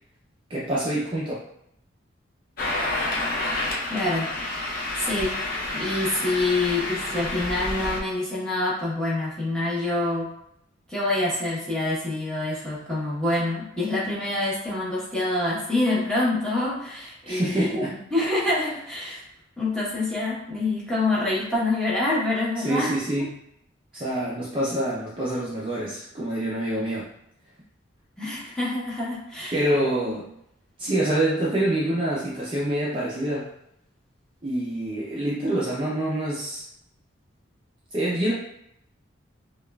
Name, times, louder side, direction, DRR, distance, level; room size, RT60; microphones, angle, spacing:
voice 1, 0.5-1.4 17.3-17.9 22.6-23.2 23.9-27.1 29.5-30.3 30.8-33.5 34.4-36.6 37.9-38.3, right 1 dB, 25° right, -7 dB, 0.5 m, -26 dB
sound 1, 2.6-8.0, left 2 dB, 45° left, 0.6 m, -29 dB
voice 2, 3.9-4.3 5.0-5.3 5.6-10.3 10.9-17.8 18.1-19.2 19.6-23.0 28.2-29.6 30.0-30.2, left 2 dB, 5° left, -8 dB, 1.0 m, -26 dB
5.1 x 2.3 x 2.3 m, 0.77 s
head